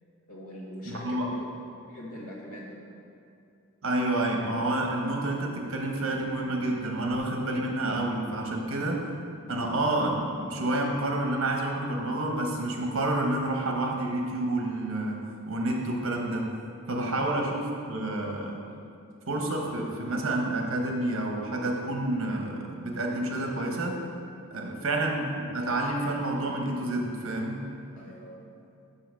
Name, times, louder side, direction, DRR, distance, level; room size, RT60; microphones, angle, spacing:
voice 1, 0.2-1.5 1.9-2.8 17.0-17.2 24.5-24.8 27.9-28.4, equal, 85° left, -3 dB, 1.7 m, -42 dB
voice 2, 0.9-1.3 3.8-9.1 9.5-16.5 16.9-18.6 19.3-24.0 24.5-27.6, right 1 dB, 65° right, 1 dB, 1.1 m, -29 dB
6.1 x 5.7 x 6.3 m, 2.5 s
head